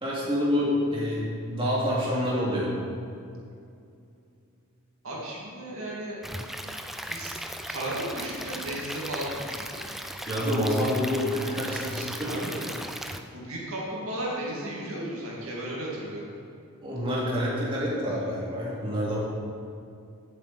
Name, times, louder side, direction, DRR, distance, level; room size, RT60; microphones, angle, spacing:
voice 1, 0.0-2.7 10.3-12.3 16.8-19.2, equal, 25° right, -7 dB, 2.7 m, -27 dB
voice 2, 5.0-6.2 7.0-9.9 12.3-12.7 13.3-16.3, right 1 dB, 65° right, -5 dB, 2.7 m, -35 dB
Stream / Liquid, 6.2-13.2, equal, ahead, 0.4 m, -37 dB
16.0 x 7.9 x 4.3 m, 2.5 s
head